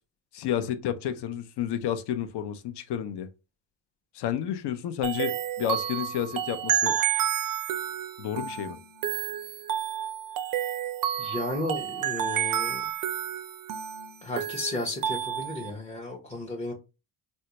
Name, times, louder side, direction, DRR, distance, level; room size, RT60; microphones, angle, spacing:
voice 1, 0.3-3.3 4.1-7.0 8.2-8.8, left 10 dB, 55° left, 0.7 m, -31 dB
sound 1, 5.0-15.7, right 10 dB, 45° right, 0.5 m, -30 dB
voice 2, 11.2-12.8 14.2-16.7, left 2 dB, 15° left, 0.6 m, -33 dB
3.6 x 2.2 x 2.8 m
cardioid pair, 105°, 47 cm